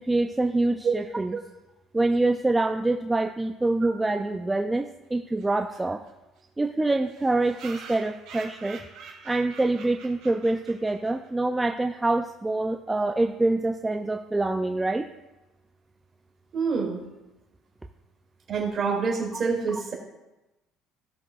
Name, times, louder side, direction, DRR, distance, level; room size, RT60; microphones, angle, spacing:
voice 1, 0.0-1.4 1.9-6.0 6.6-8.8 9.3-15.1, right 2 dB, 10° right, 4 dB, 0.4 m, -25 dB
sound 1, 5.4-5.5 5.7-5.8 6.1-6.2 6.4-6.5 7.1-11.3, right 5 dB, 70° right, 3.0 m, -45 dB
voice 2, 16.5-17.0 18.5-19.9, right 5 dB, 40° right, 0 dB, 2.7 m, -26 dB
17.0 x 6.7 x 2.4 m, 1.0 s
cardioid pair, 125°, 0 cm